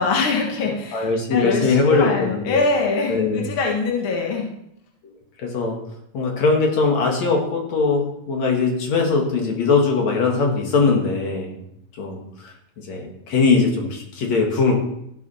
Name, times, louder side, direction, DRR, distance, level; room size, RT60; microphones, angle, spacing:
voice 1, 0.0-4.5, left 4 dB, 50° left, 0 dB, 2.2 m, -23 dB
voice 2, 0.9-2.6 3.1-3.5 5.4-5.8 6.1-11.6 11.9-14.8, left 4 dB, 65° left, 1 dB, 3.1 m, -21 dB
14.5 x 6.1 x 5.6 m, 0.77 s
omnidirectional pair, 3.3 m